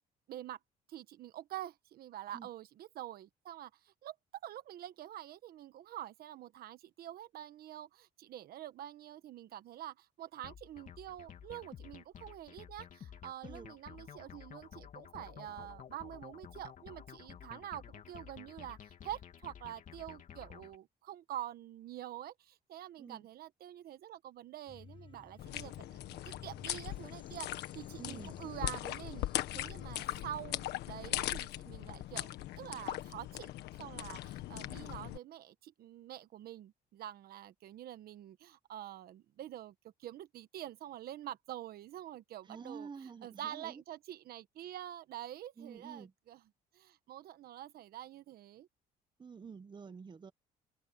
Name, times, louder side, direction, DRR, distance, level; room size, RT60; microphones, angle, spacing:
voice 1, 0.3-0.6 0.9-4.1 4.4-26.2 26.4-29.2 29.5-32.3 32.6-33.5 33.8-42.9 43.2-46.4 46.7-48.7, right 12 dB, 65° right, 1.3 m, -46 dB
sound 1, 10.4-20.8, left 9 dB, 50° left, 2.9 m, -52 dB
sound 2, 24.7-30.0, left 6 dB, 30° left, 1.3 m, -55 dB
sound 3, 25.4-35.2, left 14 dB, 80° left, 1.5 m, -40 dB
voice 2, 28.0-28.3 42.4-43.8 45.6-46.1 49.2-50.3, right 5 dB, 25° right, 1.2 m, -49 dB
cardioid pair, 110°, 17 cm